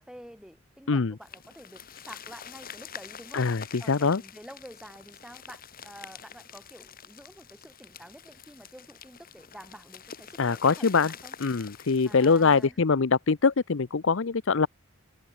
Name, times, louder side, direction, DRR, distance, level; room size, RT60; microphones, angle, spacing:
voice 1, 0.0-3.5 3.8-11.3 12.0-12.8, equal, 5° right, 7.8 m, -48 dB
sound 1, 1.2-12.7, left 7 dB, 45° left, 4.2 m, -46 dB
voice 2, 3.3-4.2 10.4-11.1 11.4-14.7, left 4 dB, 60° left, 0.7 m, -23 dB
head